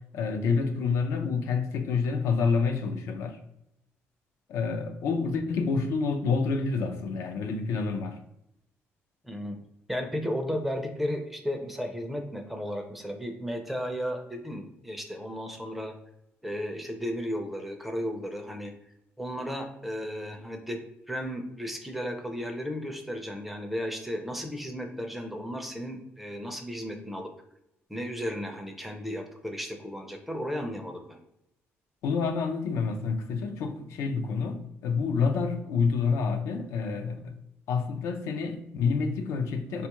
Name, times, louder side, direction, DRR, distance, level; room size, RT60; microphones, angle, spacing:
voice 1, 0.1-3.4 4.5-8.2 32.0-37.3 37.7-39.9, left 5 dB, 85° left, 6 dB, 0.4 m, -28 dB
voice 2, 9.2-9.6 9.9-15.9 16.4-18.7 19.2-20.8 21.1-27.3 27.9-31.2, equal, 5° right, 4 dB, 0.4 m, -34 dB
4.2 x 2.3 x 2.9 m, 0.81 s
cardioid pair, 145°, 5 cm